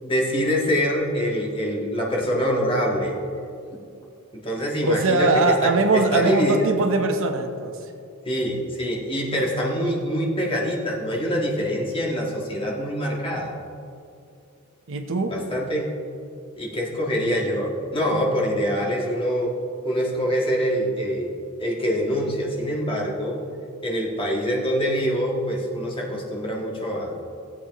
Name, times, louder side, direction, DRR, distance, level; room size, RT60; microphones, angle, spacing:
voice 1, 0.0-3.1 4.3-6.7 8.3-13.5 15.3-15.9 16.6-19.5 19.8-21.3 21.6-23.4 23.8-27.1, equal, 25° left, -2 dB, 1.7 m, -25 dB
voice 2, 4.8-7.7 14.9-15.3, right 3 dB, 65° right, 4 dB, 1.0 m, -21 dB
16.5 x 8.3 x 3.1 m, 2.5 s
head